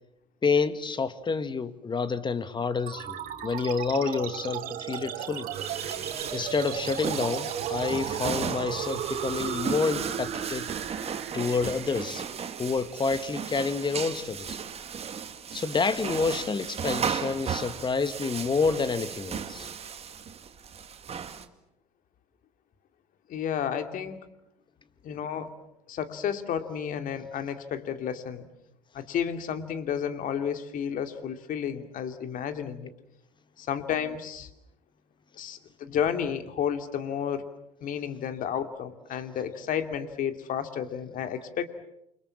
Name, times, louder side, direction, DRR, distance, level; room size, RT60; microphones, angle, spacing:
voice 1, 0.4-5.5 6.3-10.7 11.3-12.2 12.6-14.6 15.5-19.7, left 4 dB, 25° left, 12 dB, 1.9 m, -28 dB
sound 1, 2.9-13.8, right 9 dB, 50° right, 3.1 m, -36 dB
sound 2, 5.5-21.4, right 7 dB, 35° right, 2.1 m, -36 dB
voice 2, 23.3-24.2 25.0-25.5 25.9-28.4 28.9-32.9 33.6-34.5 35.4-37.5 37.8-41.7, left 8 dB, 45° left, 8 dB, 2.7 m, -31 dB
29.0 x 24.5 x 7.3 m, 0.80 s
hypercardioid pair, 70°, 19 cm